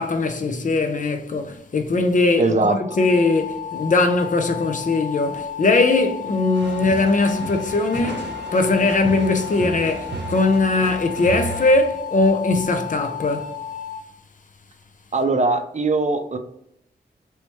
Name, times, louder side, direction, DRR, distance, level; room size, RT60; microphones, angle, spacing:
voice 1, 0.0-13.6, left 3 dB, 45° left, 0.5 m, -20 dB
voice 2, 2.4-3.0 15.1-16.4, right 3 dB, 40° right, 0.4 m, -21 dB
sound 1, 2.8-14.0, left 9 dB, ahead, 1.0 m, -33 dB
sound 2, 6.5-11.7, right 3 dB, 70° right, 0.7 m, -33 dB
3.1 x 3.0 x 3.1 m
wide cardioid pair, 80°, 19 cm